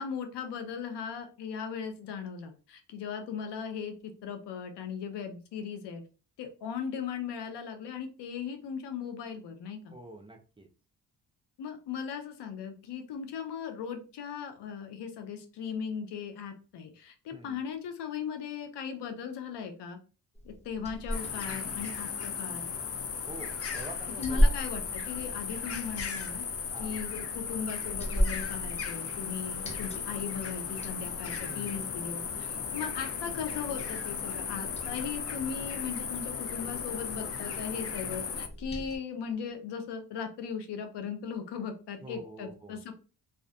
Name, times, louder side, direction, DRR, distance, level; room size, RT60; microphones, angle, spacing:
voice 1, 0.0-6.0 6.4-10.0 11.6-20.0 20.4-22.7 24.2-26.4 26.8-42.9, left 7 dB, 80° left, 6 dB, 0.6 m, -38 dB
voice 2, 9.9-10.7 17.3-17.6 23.3-24.5 26.7-27.0 31.5-32.0 42.0-42.8, right 2 dB, 15° right, 3 dB, 0.5 m, -46 dB
Liquid, 20.4-39.0, equal, 15° left, 0.9 m, -36 dB
sound 1, 21.1-38.5, left 6 dB, 35° left, 0.5 m, -36 dB
2.5 x 2.4 x 2.2 m, 0.35 s
supercardioid pair, 55°, 41 cm